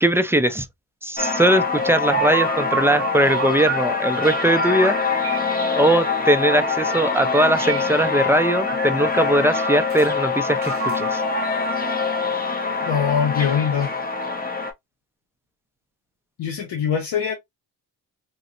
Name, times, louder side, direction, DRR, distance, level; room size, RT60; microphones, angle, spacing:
voice 1, 0.0-0.7 1.0-5.0 5.8-11.2, right 1 dB, 5° right, 0.4 m, -20 dB
sound 1, 1.2-14.7, left 4 dB, 20° left, 0.8 m, -24 dB
sound 2, 1.6-4.4 4.8-6.6 7.3-8.4 8.7-10.1 10.6-12.4, right 6 dB, 35° right, 0.7 m, -31 dB
voice 2, 12.8-13.9 16.4-17.4, left 7 dB, 80° left, 0.8 m, -22 dB
3.9 x 2.1 x 2.4 m
cardioid pair, 75°, 41 cm